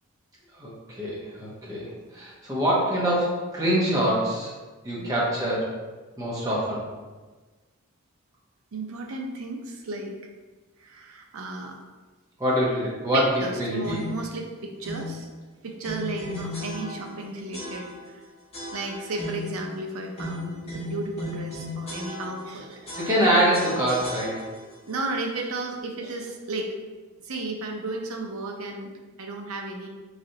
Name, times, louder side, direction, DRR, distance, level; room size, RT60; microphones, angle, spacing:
voice 1, 0.6-4.5 4.8-5.7 6.2-6.8 12.4-13.2 13.6-14.0 23.0-24.4, equal, 15° right, -6 dB, 0.9 m, -25 dB
voice 2, 8.7-10.2 10.8-11.8 13.1-15.3 15.6-18.2 18.7-23.0 24.9-26.7 27.2-28.9 29.2-29.9, right 2 dB, 80° right, 2 dB, 0.5 m, -34 dB
sound 1, 13.8-14.3 14.8-15.2 15.8-17.2 17.5-18.1 18.5-19.6 20.1-22.5 22.8-24.7, left 1 dB, 25° left, 1.2 m, -36 dB
3.9 x 3.2 x 2.7 m, 1.3 s
head